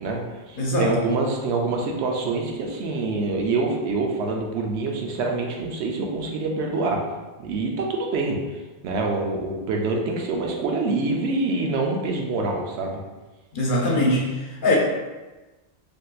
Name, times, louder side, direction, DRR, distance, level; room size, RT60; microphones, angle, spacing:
voice 1, 0.0-7.0 7.4-13.0, right 3 dB, 85° right, 1 dB, 0.8 m, -26 dB
voice 2, 0.6-1.0 13.5-14.8, left 1 dB, 60° left, -2 dB, 0.7 m, -22 dB
3.5 x 2.6 x 2.3 m, 1.2 s
omnidirectional pair, 1.1 m